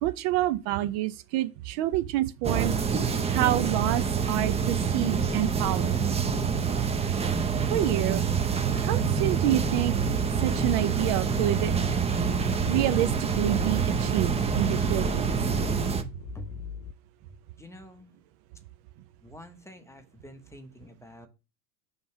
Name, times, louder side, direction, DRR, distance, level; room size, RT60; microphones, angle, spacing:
voice 1, 0.0-2.8 3.3-5.9 7.7-8.2 8.8-9.9 10.4-11.7 12.7-15.3, right 14 dB, 55° right, 0.6 m, -28 dB
sound 1, 2.4-16.0, right 6 dB, 15° right, 0.6 m, -26 dB
sound 2, 9.5-16.9, left 7 dB, 35° left, 0.4 m, -40 dB
voice 2, 17.6-18.1 19.2-21.3, right 1 dB, 5° left, 0.9 m, -47 dB
5.3 x 3.2 x 5.6 m
supercardioid pair, 105°, 45 cm